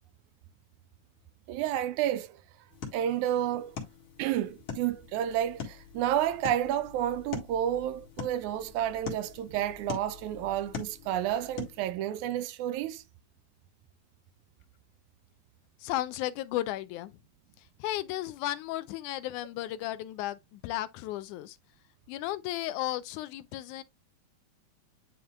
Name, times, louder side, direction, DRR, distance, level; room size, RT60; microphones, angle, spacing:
voice 1, 1.5-2.4 2.9-3.8 4.2-13.0, right 11 dB, 80° right, 1.9 m, -30 dB
sound 1, 2.7-11.9, left 6 dB, 50° left, 2.4 m, -43 dB
voice 2, 15.8-17.2 17.8-21.6 22.1-23.8, left 14 dB, 85° left, 2.1 m, -34 dB
10.0 x 4.3 x 2.3 m
omnidirectional pair, 3.5 m